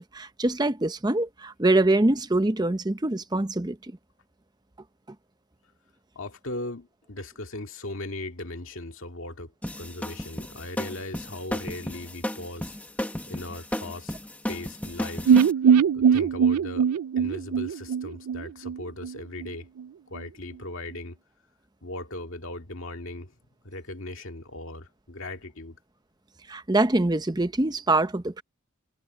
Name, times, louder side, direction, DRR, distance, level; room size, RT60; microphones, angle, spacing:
voice 1, 0.0-3.8 26.5-28.4, right 2 dB, 20° right, 0.7 m, -24 dB
voice 2, 6.1-9.5 9.8-12.8 13.3-14.1 14.5-15.4 15.9-19.7 20.1-21.2 21.8-23.3 23.6-25.8, left 2 dB, 60° left, 2.2 m, -38 dB
sound 1, 9.6-15.5, left 1 dB, 5° left, 1.2 m, -34 dB
sound 2, 15.3-19.1 19.4-19.5 19.8-19.9, right 7 dB, 80° right, 0.3 m, -21 dB
head